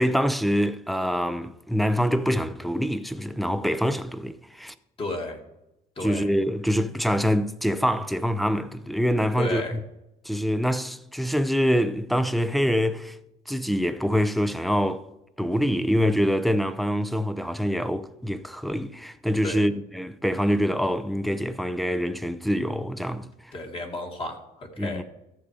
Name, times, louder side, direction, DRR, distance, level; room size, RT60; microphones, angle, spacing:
voice 1, 0.0-4.7 6.0-9.8 10.3-13.2 13.5-15.1 15.4-23.3 24.8-25.0, equal, ahead, 0.6 m, -25 dB
voice 2, 5.0-5.4 6.0-6.3 9.4-9.8 19.4-19.7 23.5-25.0, left 1 dB, 30° left, 2.2 m, -32 dB
14.0 x 6.7 x 5.0 m
cardioid pair, 110°, 17 cm